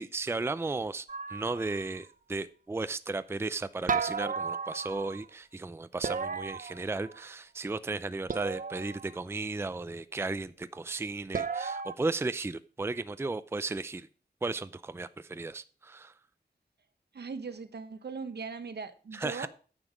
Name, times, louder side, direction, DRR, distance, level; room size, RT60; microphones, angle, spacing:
voice 1, 0.0-14.1 14.4-16.1 19.1-19.5, right 3 dB, 15° right, 14 dB, 0.4 m, -35 dB
sound 1, 1.1-2.0 3.9-5.3 6.0-7.3 8.3-9.1 11.3-11.9, right 5 dB, 50° right, 0.7 m, -34 dB
voice 2, 17.1-19.5, right 5 dB, 70° right, 10 dB, 1.1 m, -39 dB
9.8 x 7.2 x 5.1 m, 0.39 s
wide cardioid pair, 95°, 17 cm